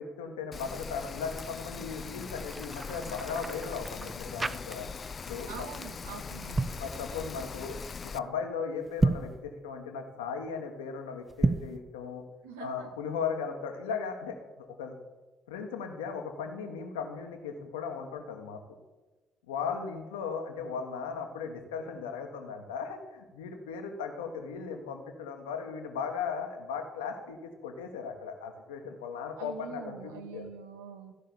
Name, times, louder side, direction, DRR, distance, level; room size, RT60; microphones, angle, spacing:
voice 1, 0.0-4.9 5.3-5.7 6.8-7.8 8.0-12.2 12.6-14.9 15.5-18.6 19.5-30.5, left 6 dB, 80° left, 4 dB, 1.2 m, -37 dB
Rain, 0.5-8.2, left 5 dB, 40° left, 0.4 m, -41 dB
sound 1, 2.3-5.2 5.4-5.7 6.3-6.9 8.9-9.4 11.3-11.8, right 3 dB, 25° right, 0.6 m, -31 dB
voice 2, 5.5-6.7 12.4-12.9 29.4-31.1, right 6 dB, 75° right, 6 dB, 1.1 m, -44 dB
14.0 x 5.5 x 7.0 m, 1.2 s
figure-of-eight pair, 45°, 0 cm